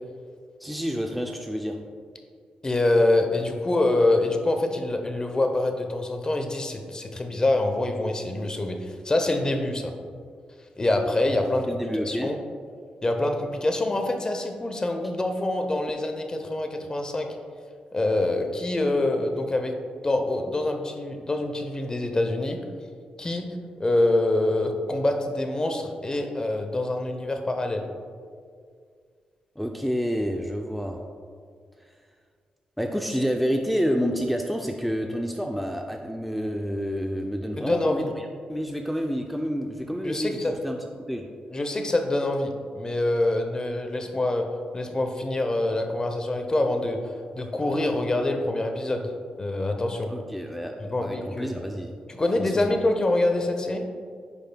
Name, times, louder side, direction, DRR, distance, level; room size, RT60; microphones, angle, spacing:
voice 1, 0.6-1.8 11.7-12.4 29.6-31.0 32.8-40.8 41.1-41.3 50.1-50.7 51.0-52.0 52.4-52.6, equal, ahead, 2 dB, 0.4 m, -29 dB
voice 2, 2.6-9.9 10.8-12.4 13.0-17.3 17.9-19.7 20.0-22.6 23.2-23.5 23.8-27.9 37.6-38.1 40.0-40.5 41.5-44.5 44.7-47.0 47.4-49.1 49.4-50.1 50.8-51.5 52.1-53.8, left 2 dB, 25° left, 5 dB, 0.8 m, -25 dB
9.7 x 5.3 x 2.3 m, 2.1 s
cardioid pair, 75°, 3 cm